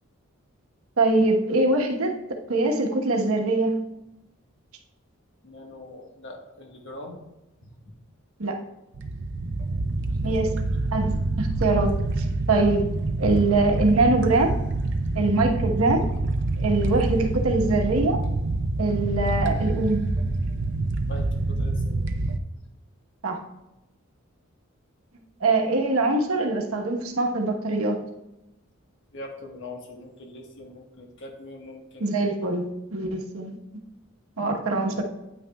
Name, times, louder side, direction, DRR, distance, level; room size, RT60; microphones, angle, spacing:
voice 1, 1.0-2.1 2.5-3.8 8.4-8.6 10.2-10.5 10.9-12.8 13.2-14.5 15.1-16.0 16.6-18.2 18.8-20.0 23.2-23.4 25.4-28.0 32.0-33.6 34.4-35.0, right 2 dB, 90° right, 2 dB, 1.2 m, -23 dB
voice 2, 5.4-7.2 7.6-7.9 10.1-10.5 11.1-11.2 21.1-22.2 29.1-32.4, left 2 dB, 60° left, 1 dB, 1.4 m, -42 dB
sound 1, 8.9-22.4, right 2 dB, 55° right, 0.5 m, -26 dB
9.2 x 9.0 x 2.3 m, 0.94 s
head